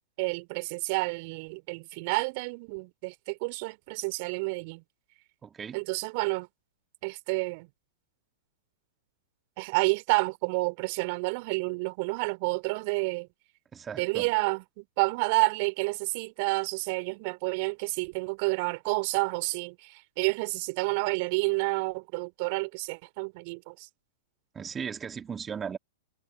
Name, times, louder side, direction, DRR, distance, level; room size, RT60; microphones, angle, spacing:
voice 1, 0.2-4.8 5.7-6.5 7.0-7.7 9.6-13.3 14.0-23.9, right 29 dB, 45° right, 5.0 m, -29 dB
voice 2, 5.4-5.9 13.7-14.3 24.5-25.8, right 7 dB, 20° right, 3.9 m, -37 dB
figure-of-eight pair, 100°, 0 cm